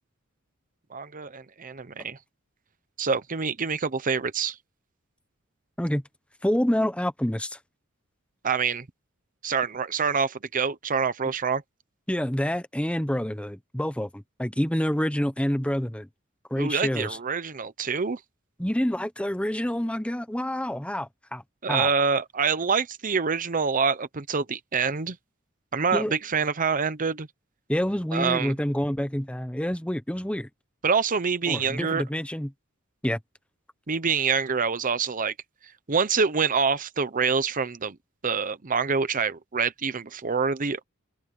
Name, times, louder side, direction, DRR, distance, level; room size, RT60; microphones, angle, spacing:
voice 1, 0.9-2.2 3.0-4.5 8.4-8.8 9.4-11.6 16.6-18.2 21.6-25.2 25.7-27.3 28.1-28.5 30.8-32.0 33.9-35.3 35.9-38.0 38.2-40.8, right 5 dB, 40° right, 0.8 m, -26 dB
voice 2, 6.4-7.6 12.1-16.1 16.5-17.2 18.6-21.4 21.7-21.9 25.9-26.1 27.7-30.5 31.5-32.5 33.0-33.2, equal, 5° left, 1.1 m, -27 dB
open air
head